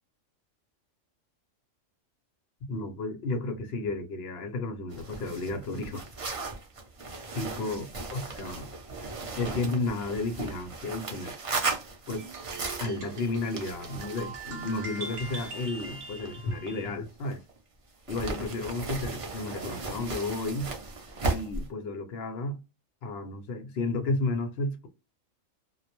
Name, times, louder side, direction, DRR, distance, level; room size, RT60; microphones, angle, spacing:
voice 1, 2.7-6.0 7.3-8.7 9.4-11.3 12.1-17.4 18.1-20.7 21.3-22.6 23.0-24.9, left 2 dB, 65° left, 0.7 m, -32 dB
sound 1, 4.9-17.6 18.1-21.7, right 3 dB, 45° right, 0.4 m, -37 dB
sound 2, 12.2-16.9, right 3 dB, 70° right, 0.9 m, -42 dB
2.2 x 2.0 x 2.8 m
omnidirectional pair, 1.3 m